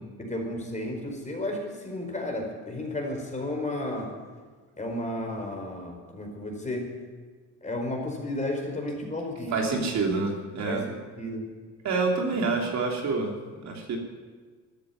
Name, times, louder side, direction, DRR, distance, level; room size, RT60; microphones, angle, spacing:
voice 1, 0.2-4.2 4.8-7.0 7.6-9.8 10.7-11.5, left 1 dB, 25° left, 2 dB, 4.8 m, -33 dB
voice 2, 9.5-10.8 11.8-13.3 13.6-14.0, right 3 dB, 65° right, 1 dB, 3.1 m, -27 dB
13.5 x 10.0 x 9.6 m, 1.5 s
cardioid pair, 90°, 30 cm